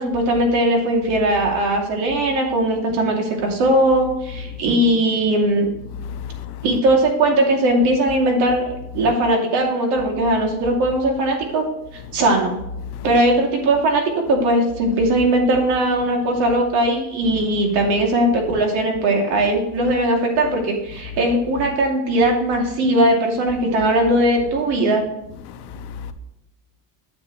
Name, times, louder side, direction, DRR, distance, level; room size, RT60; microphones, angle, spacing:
voice 1, 0.0-5.7 6.6-8.7 8.9-11.6 11.9-12.6 13.0-25.0, right 1 dB, 80° right, 2.7 m, -19 dB
voice 2, 6.0-6.6 12.1-12.2 12.9-13.1 25.4-26.1, left 7 dB, 75° left, 1.0 m, -34 dB
10.0 x 7.2 x 3.1 m
cardioid pair, 160°, 39 cm